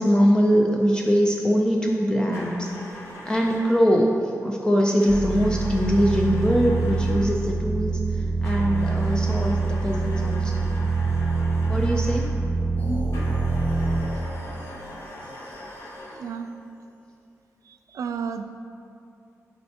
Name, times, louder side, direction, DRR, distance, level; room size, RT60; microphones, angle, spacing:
voice 1, 0.0-2.7 3.2-4.1 4.4-8.0 8.4-10.5 11.7-12.3, equal, 15° left, -1 dB, 0.4 m, -22 dB
sound 1, 2.3-3.9 5.0-7.4 8.4-12.4 13.1-16.4, left 1 dB, 60° left, 1.2 m, -41 dB
sound 2, 5.1-14.0, right 3 dB, 5° right, 1.2 m, -25 dB
sound 3, 12.8-16.7, left 1 dB, 35° left, 0.8 m, -38 dB
voice 2, 16.2-16.5 17.9-18.4, right 6 dB, 75° right, 7 dB, 0.3 m, -31 dB
9.5 x 4.2 x 2.8 m, 2.5 s
wide cardioid pair, 160°, 6 cm